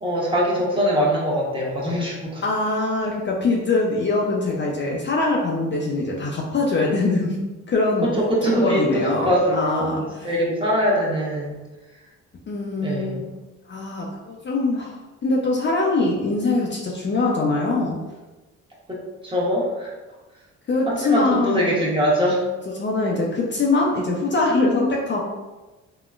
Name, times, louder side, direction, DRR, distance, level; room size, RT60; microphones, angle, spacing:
voice 1, 0.0-2.4 8.0-11.5 12.8-13.2 18.9-19.9 20.9-22.4, equal, 15° right, -5 dB, 1.0 m, -22 dB
voice 2, 2.4-8.1 8.6-10.3 12.5-13.4 13.7-14.9 15.2-18.0 20.7-21.7 22.8-25.3, left 3 dB, 40° left, -2 dB, 0.5 m, -23 dB
3.6 x 2.2 x 2.4 m, 1.1 s
cardioid pair, 90°, 30 cm